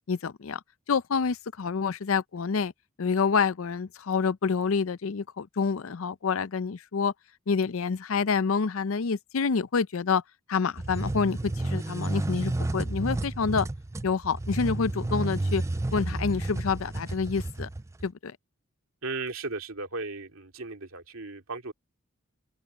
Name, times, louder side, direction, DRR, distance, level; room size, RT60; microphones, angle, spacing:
voice 1, 0.1-0.6 0.9-2.7 3.0-7.1 7.5-10.2 10.5-13.7 14.0-15.6 15.9-17.7 18.0-18.4, left 5 dB, 70° left, 0.5 m, -27 dB
sound 1, 10.8-18.1, right 2 dB, 15° right, 0.4 m, -31 dB
voice 2, 19.0-21.7, right 3 dB, 75° right, 2.6 m, -36 dB
open air
head